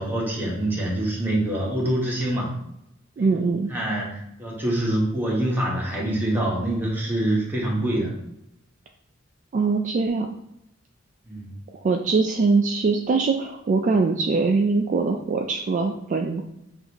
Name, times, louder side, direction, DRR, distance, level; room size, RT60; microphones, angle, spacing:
voice 1, 0.0-2.5 3.2-3.4 3.7-8.1 11.3-11.5, right 1 dB, 10° right, -4 dB, 1.2 m, -25 dB
voice 2, 3.2-3.7 9.5-10.3 11.8-16.4, right 4 dB, 40° right, 2 dB, 0.3 m, -22 dB
6.2 x 2.6 x 2.9 m, 0.83 s
head